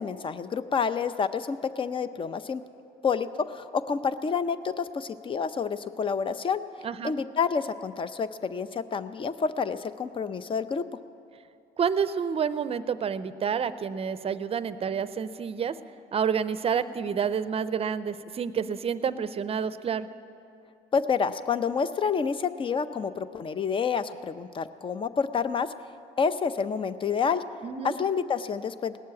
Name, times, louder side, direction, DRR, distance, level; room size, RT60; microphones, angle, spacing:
voice 1, 0.0-2.6 3.0-6.6 7.0-10.9 20.9-25.7 26.2-27.4 27.8-29.0, left 6 dB, 30° left, 13 dB, 0.6 m, -28 dB
voice 2, 6.8-7.1 11.8-15.8 16.1-20.1 27.6-27.9, right 7 dB, 35° right, 14 dB, 0.6 m, -29 dB
18.5 x 7.4 x 9.5 m, 2.7 s
cardioid pair, 110°, 17 cm